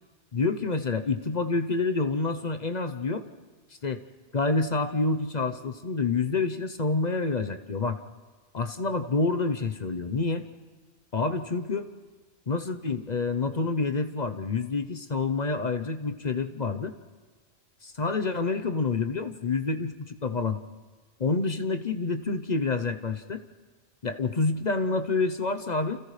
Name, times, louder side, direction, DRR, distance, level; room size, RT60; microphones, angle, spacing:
voice 1, 0.3-3.2 3.8-4.0 4.3-8.0 8.5-10.4 11.1-11.9 12.5-16.9 17.8-20.6 21.2-23.4 24.0-26.0, left 3 dB, 40° left, 8 dB, 0.8 m, -28 dB
29.5 x 29.5 x 3.3 m, 1.4 s
omnidirectional pair, 1.4 m